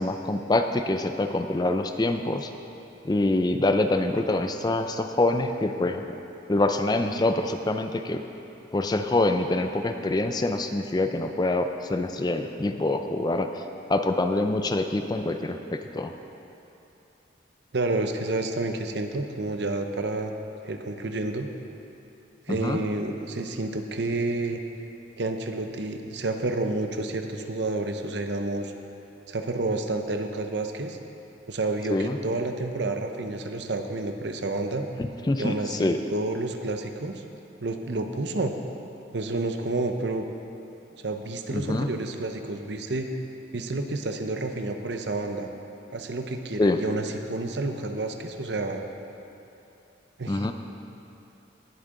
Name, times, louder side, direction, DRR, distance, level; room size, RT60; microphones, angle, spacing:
voice 1, 0.0-2.5 3.0-6.0 6.5-8.2 8.7-13.5 13.9-16.1 22.6-22.8 31.9-32.2 35.0-36.0 41.5-41.9 46.6-46.8 50.3-50.5, left 2 dB, 20° left, 7 dB, 0.4 m, -25 dB
voice 2, 17.7-20.3 20.6-21.5 22.5-24.6 25.2-28.7 29.3-31.0 31.5-34.9 35.4-37.2 37.6-38.5 39.1-40.3 41.0-43.1 43.5-45.5 45.9-48.8 50.2-50.5, right 2 dB, 60° right, 5 dB, 0.8 m, -29 dB
19.0 x 8.3 x 3.8 m, 2.9 s
head